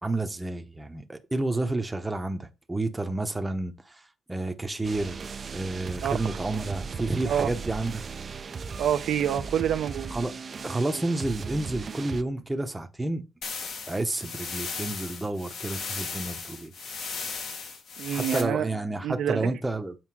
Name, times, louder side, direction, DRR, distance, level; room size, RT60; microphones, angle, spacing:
voice 1, 0.0-5.3 5.5-8.0 10.1-10.3 10.6-13.2 13.9-16.7 18.1-20.0, right 2 dB, 10° right, 0.9 m, -30 dB
sound 1, 4.8-12.2, right 5 dB, 35° right, 0.5 m, -37 dB
voice 2, 8.8-10.1 18.0-18.7 19.0-19.4, right 9 dB, 80° right, 0.8 m, -27 dB
sound 2, 13.4-18.4, left 5 dB, 65° left, 2.1 m, -36 dB
7.8 x 4.8 x 4.8 m
cardioid pair, 135°, 0 cm